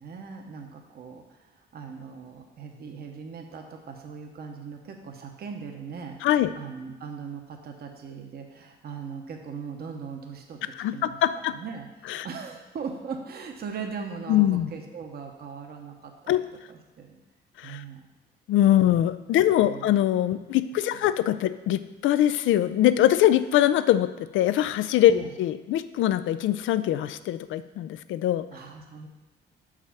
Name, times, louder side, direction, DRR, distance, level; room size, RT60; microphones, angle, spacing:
voice 1, 0.0-10.6 10.9-11.2 11.5-17.2 17.6-18.1 19.3-19.9 20.9-21.1 25.1-25.3 28.5-29.1, right 5 dB, 50° right, 3 dB, 0.9 m, -40 dB
voice 2, 6.2-6.5 10.8-11.5 12.1-12.3 14.3-14.7 16.3-16.4 17.6-17.8 18.5-28.5, left 12 dB, 80° left, 13 dB, 0.4 m, -23 dB
6.2 x 4.9 x 5.7 m, 1.2 s
cardioid pair, 90°, 20 cm